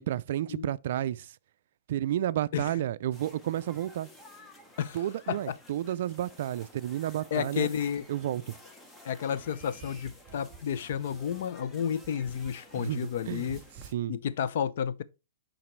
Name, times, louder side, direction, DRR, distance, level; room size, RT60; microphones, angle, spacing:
voice 1, 0.0-1.3 1.9-4.1 4.9-7.7 8.1-8.5 12.7-13.0 13.3-13.5 13.9-14.2, right 12 dB, 55° right, 0.3 m, -31 dB
sound 1, 3.1-13.9, left 1 dB, 10° left, 0.8 m, -53 dB
voice 2, 7.3-8.0 9.0-13.6 14.1-15.0, left 8 dB, 55° left, 0.6 m, -31 dB
sound 2, 9.4-12.8 13.1-14.0, right 6 dB, 20° right, 3.3 m, -52 dB
10.0 x 4.0 x 3.1 m
hypercardioid pair, 155°, 0 cm